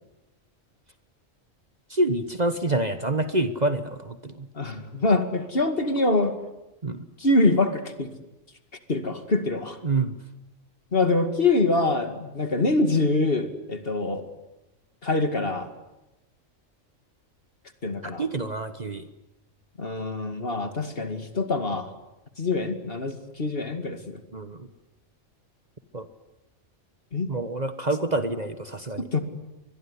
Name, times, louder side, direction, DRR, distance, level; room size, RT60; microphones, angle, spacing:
voice 1, 1.9-4.5 6.8-7.0 9.8-10.1 18.0-19.1 24.3-24.7 25.9-26.0 27.3-29.0, right 2 dB, 35° right, 10 dB, 1.3 m, -27 dB
voice 2, 4.6-6.4 7.2-8.1 8.9-9.8 10.9-14.2 15.0-15.7 17.8-18.2 19.8-21.9 22.4-24.2 27.1-27.3 29.0-29.2, left 2 dB, 45° left, 8 dB, 2.4 m, -24 dB
25.0 x 21.5 x 9.9 m, 0.98 s
omnidirectional pair, 1.4 m